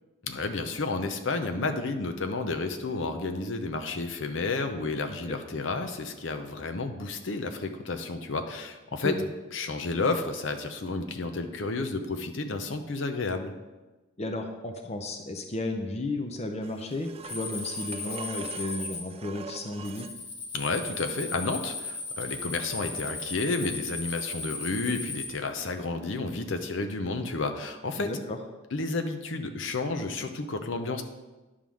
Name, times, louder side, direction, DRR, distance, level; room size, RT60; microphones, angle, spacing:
voice 1, 0.2-9.2 9.5-13.5 20.5-28.1 28.7-31.0, left 3 dB, 65° left, 6 dB, 0.7 m, -31 dB
voice 2, 14.2-20.1 28.0-28.4, left 2 dB, 35° left, 4 dB, 0.6 m, -33 dB
sound 1, 16.6-20.2 23.1-23.2, right 5 dB, 30° right, 0.4 m, -44 dB
sound 2, 17.2-19.0 19.8-25.3, left 3 dB, 85° left, 2.0 m, -36 dB
10.0 x 3.7 x 6.2 m, 1.1 s
head